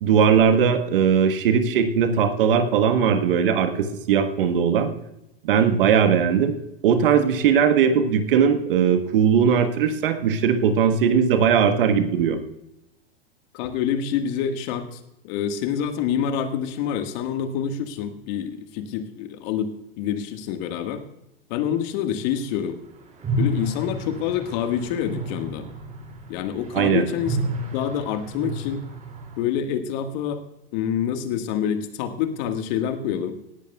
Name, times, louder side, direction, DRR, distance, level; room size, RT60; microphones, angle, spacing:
voice 1, 0.0-4.9 5.4-6.5 6.8-12.4 26.7-27.1, right 7 dB, 60° right, 8 dB, 1.5 m, -19 dB
voice 2, 13.5-21.0 21.5-22.8 23.4-25.7 26.3-28.9 29.4-30.4 30.7-33.3, left 8 dB, 45° left, 7 dB, 1.6 m, -27 dB
sound 1, 23.2-29.4, right 1 dB, 25° right, 2.7 m, -31 dB
18.0 x 14.0 x 2.3 m, 0.83 s
figure-of-eight pair, 95°, 30 cm